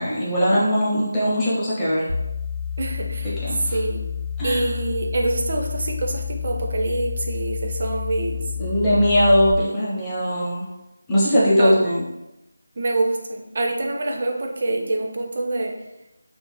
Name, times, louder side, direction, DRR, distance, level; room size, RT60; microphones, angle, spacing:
voice 1, 0.0-2.1 3.2-3.8 4.4-4.7 8.6-10.7 11.1-12.0, equal, 10° left, -10 dB, 0.7 m, -20 dB
sound 1, 2.1-9.5, left 7 dB, 80° left, 0.5 m, -29 dB
voice 2, 2.8-4.0 4.4-8.4 11.6-11.7 12.8-15.7, right 2 dB, 45° right, 2 dB, 0.4 m, -25 dB
2.4 x 2.1 x 3.1 m, 0.94 s
figure-of-eight pair, 165°, 0 cm